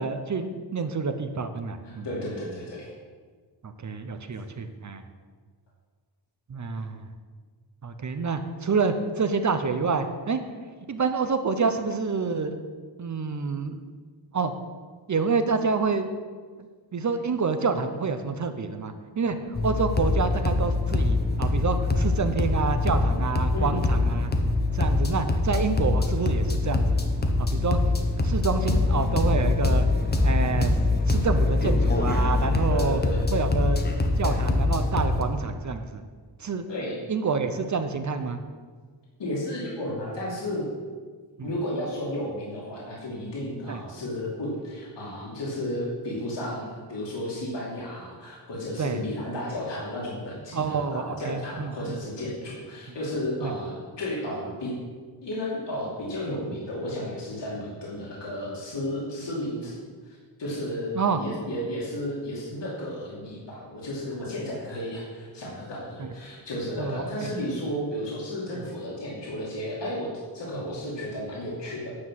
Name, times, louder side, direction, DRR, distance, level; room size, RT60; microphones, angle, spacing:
voice 1, 0.0-2.1 3.6-5.0 6.5-7.0 7.8-10.4 10.9-12.6 13.0-13.8 14.3-14.5 15.1-16.2 16.9-24.3 24.7-27.0 27.4-27.8 28.2-29.9 30.2-30.7 31.1-33.0 33.3-33.8 34.2-36.0 36.4-36.7 37.1-38.4 41.4-41.5 43.7-43.8 48.8-49.0 50.5-52.0 53.4-53.5 61.0-61.2 66.0-66.1 66.8-67.3 68.5-68.6, right 4 dB, 40° right, 8 dB, 0.7 m, -28 dB
voice 2, 1.8-2.9 23.5-23.7 32.7-33.2 36.7-37.0 39.2-40.7 41.4-54.7 55.2-59.8 60.0-71.9, left 1 dB, 70° left, -5 dB, 2.7 m, -33 dB
Embo-techno. Loop track, 19.5-35.2, left 2 dB, 20° left, 0.9 m, -24 dB
9.8 x 6.0 x 7.6 m, 1.5 s
wide cardioid pair, 180°, 44 cm